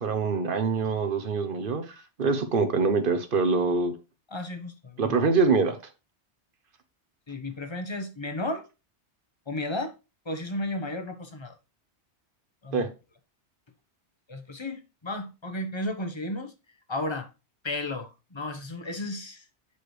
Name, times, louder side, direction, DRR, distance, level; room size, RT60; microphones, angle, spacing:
voice 1, 0.0-1.8 2.2-3.9 5.0-5.8 12.7-12.9, right 4 dB, 50° right, 1.0 m, -24 dB
voice 2, 4.3-5.2 7.3-8.7 9.5-9.9 10.2-11.5 12.6-12.9 14.3-16.5 16.9-17.3 17.6-19.4, left 2 dB, 25° left, 0.9 m, -33 dB
8.2 x 4.9 x 3.1 m
omnidirectional pair, 1.2 m